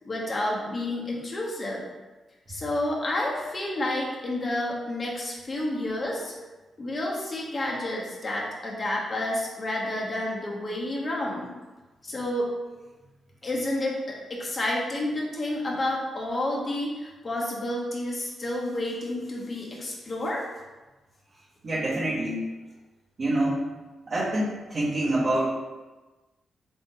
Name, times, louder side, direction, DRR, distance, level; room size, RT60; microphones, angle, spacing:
voice 1, 0.0-1.8 2.5-6.3 6.8-11.5 12.0-12.5 13.4-20.5, left 1 dB, 40° left, -3 dB, 1.0 m, -30 dB
voice 2, 21.6-22.4 23.2-23.7 24.1-25.5, right 1 dB, 50° right, -8 dB, 0.9 m, -26 dB
3.6 x 3.5 x 2.8 m, 1.2 s
cardioid pair, 70°, 0 cm